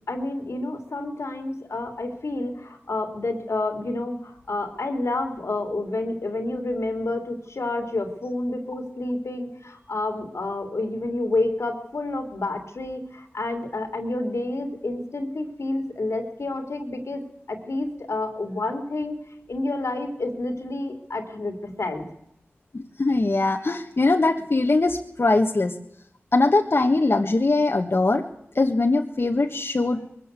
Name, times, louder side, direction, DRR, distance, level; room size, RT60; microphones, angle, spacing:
voice 1, 0.1-19.2 19.5-22.0, left 2 dB, 90° left, 6 dB, 3.1 m, -29 dB
voice 2, 22.7-25.7 26.3-28.2 28.5-30.2, left 2 dB, 60° left, 3 dB, 1.4 m, -21 dB
22.0 x 15.0 x 8.3 m, 0.78 s
wide cardioid pair, 65°, 5 cm